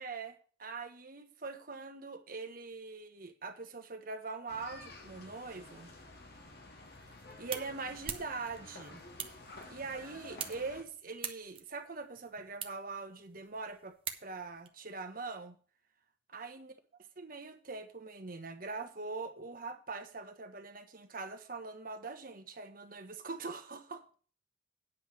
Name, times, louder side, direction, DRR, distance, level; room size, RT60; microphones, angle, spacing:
voice 1, 0.0-5.9 7.4-9.0 9.7-13.9 14.2-15.6 16.3-16.7 17.2-24.0, right 4 dB, 50° right, 1.3 m, -43 dB
sound 1, 4.5-10.8, left 2 dB, 55° left, 2.0 m, -51 dB
sound 2, 6.8-14.7, right 8 dB, 30° right, 1.0 m, -46 dB
9.3 x 5.6 x 7.4 m
head